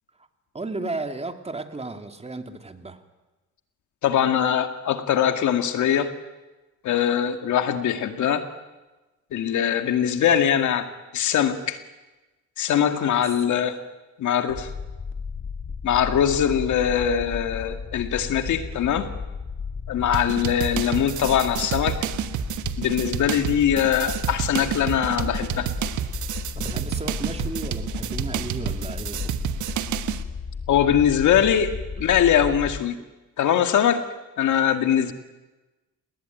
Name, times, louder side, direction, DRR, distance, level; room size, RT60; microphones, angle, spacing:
voice 1, 0.5-3.0 13.2-13.6 26.5-29.4, right 3 dB, 20° right, 7 dB, 2.5 m, -34 dB
voice 2, 4.0-6.1 6.8-8.5 9.3-10.9 11.1-11.8 12.6-13.8 14.2-14.7 15.8-19.1 19.9-22.0 22.8-25.7 30.7-31.7 32.0-33.0 33.4-34.0 34.4-35.1, left 9 dB, 75° left, 8 dB, 2.2 m, -22 dB
sound 1, 14.5-32.8, left 5 dB, 40° left, 1.8 m, -34 dB
sound 2, 20.1-30.2, right 12 dB, 75° right, 1.4 m, -30 dB
29.0 x 19.5 x 9.3 m, 1.1 s
cardioid pair, 90°, 30 cm